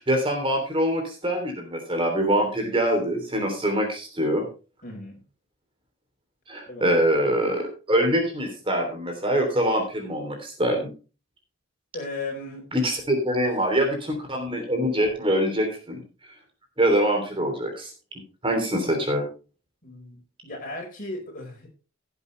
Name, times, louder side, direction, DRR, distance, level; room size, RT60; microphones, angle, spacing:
voice 1, 0.0-4.4 6.5-10.8 12.7-16.0 16.8-17.9 18.4-19.2, equal, 25° right, 3 dB, 3.2 m, -24 dB
voice 2, 4.8-5.2 6.7-7.1 11.9-12.6 19.8-21.7, left 2 dB, 45° left, 1 dB, 4.9 m, -36 dB
17.0 x 8.2 x 3.3 m, 0.34 s
head